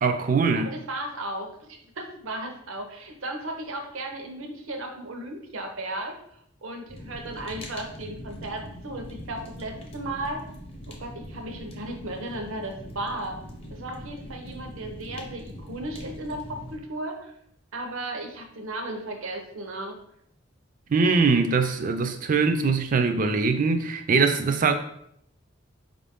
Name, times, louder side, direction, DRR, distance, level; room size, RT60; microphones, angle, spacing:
voice 1, 0.0-0.7 20.9-24.7, right 4 dB, 40° right, 7 dB, 0.4 m, -22 dB
voice 2, 0.5-6.1 6.6-10.4 10.9-13.4 13.7-17.3 17.7-20.0, right 1 dB, 80° right, 3 dB, 0.7 m, -35 dB
Fire, 6.9-16.8, equal, 30° left, 0.6 m, -42 dB
4.7 x 2.6 x 3.5 m, 0.71 s
head